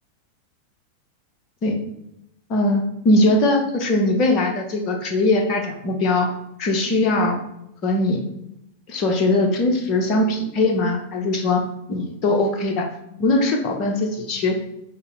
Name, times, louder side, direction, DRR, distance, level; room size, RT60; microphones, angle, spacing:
voice 1, 2.5-6.3 6.6-7.3 7.8-8.2 8.9-11.6 11.9-12.9 13.2-14.5, left 2 dB, 35° left, 3 dB, 0.8 m, -20 dB
5.3 x 2.0 x 3.9 m, 0.81 s
figure-of-eight pair, 90°, 0 cm